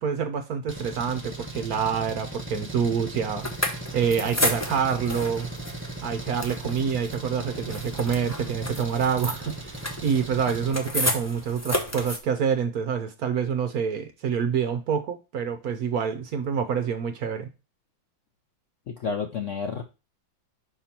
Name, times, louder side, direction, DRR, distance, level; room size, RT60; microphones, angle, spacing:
voice 1, 0.0-5.5 6.0-17.5, right 7 dB, 60° right, 1.0 m, -27 dB
Engine, 0.7-10.7, right 2 dB, 10° right, 0.9 m, -38 dB
sound 1, 3.4-12.2, left 1 dB, 15° left, 0.5 m, -32 dB
voice 2, 18.9-19.8, left 5 dB, 65° left, 0.7 m, -30 dB
5.5 x 5.0 x 4.3 m
omnidirectional pair, 2.1 m